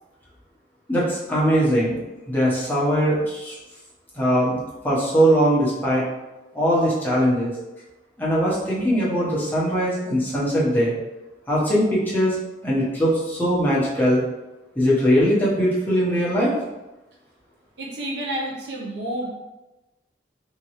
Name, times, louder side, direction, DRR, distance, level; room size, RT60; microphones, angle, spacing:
voice 1, 0.9-2.0 2.3-3.5 4.1-4.6 4.8-6.0 6.5-7.5 8.2-11.0 11.5-12.4 12.6-14.2 14.7-16.5, equal, 10° left, -7 dB, 1.0 m, -20 dB
voice 2, 17.8-19.3, right 1 dB, 65° right, -2 dB, 0.9 m, -29 dB
3.7 x 3.0 x 3.0 m, 1.0 s
head